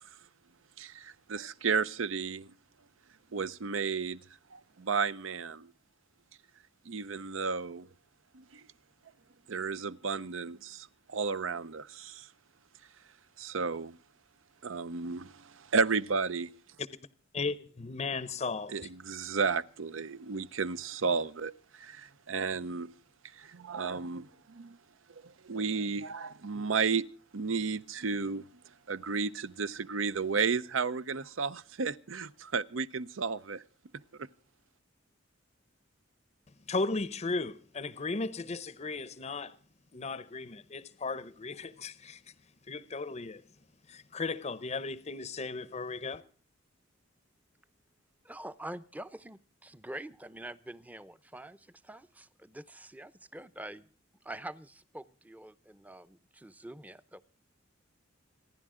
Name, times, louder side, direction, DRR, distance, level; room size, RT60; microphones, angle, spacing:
voice 1, 0.8-2.5 3.3-4.2 4.5-5.7 6.9-7.9 8.3-8.6 9.5-12.3 13.4-14.0 14.6-16.5 18.7-22.9 23.3-24.8 25.2-27.1 27.3-28.5 28.9-33.6 34.2-34.3, right 5 dB, 75° right, 0.7 m, -33 dB
voice 2, 17.3-18.7 36.7-39.5 39.9-42.2 42.7-43.4 43.9-46.2, left 3 dB, 35° left, 0.6 m, -36 dB
voice 3, 48.2-53.9 54.2-57.2, right 1 dB, 10° right, 0.6 m, -45 dB
28.0 x 11.0 x 3.7 m
head